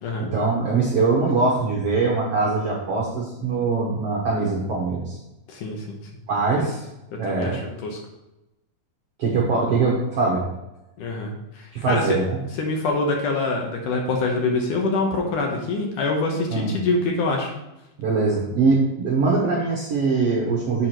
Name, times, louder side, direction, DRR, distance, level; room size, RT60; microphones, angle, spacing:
voice 1, 0.2-5.2 6.3-6.8 7.2-7.6 9.2-10.5 11.7-12.4 16.5-16.7 18.0-20.9, right 3 dB, 65° right, -3 dB, 1.6 m, -22 dB
voice 2, 5.5-6.0 6.5-6.6 7.3-7.5 7.8-8.0 11.0-12.2 12.6-17.5, left 3 dB, 65° left, 1 dB, 2.4 m, -25 dB
7.2 x 4.8 x 5.9 m, 0.93 s
omnidirectional pair, 4.2 m